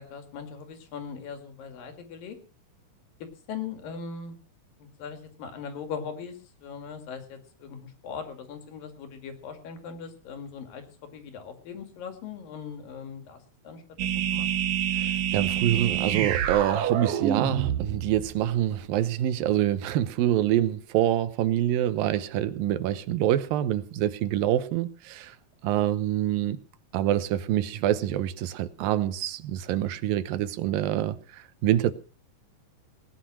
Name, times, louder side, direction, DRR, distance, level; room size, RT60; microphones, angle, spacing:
voice 1, 0.0-2.4 3.2-4.4 4.8-13.8 14.1-14.5, left 6 dB, 80° left, 3.8 m, -40 dB
sound 1, 14.0-18.6, right 9 dB, 65° right, 1.5 m, -27 dB
voice 2, 14.9-25.4 25.6-26.6 26.9-31.9, right 12 dB, 85° right, 2.7 m, -26 dB
18.5 x 10.0 x 6.0 m
omnidirectional pair, 4.0 m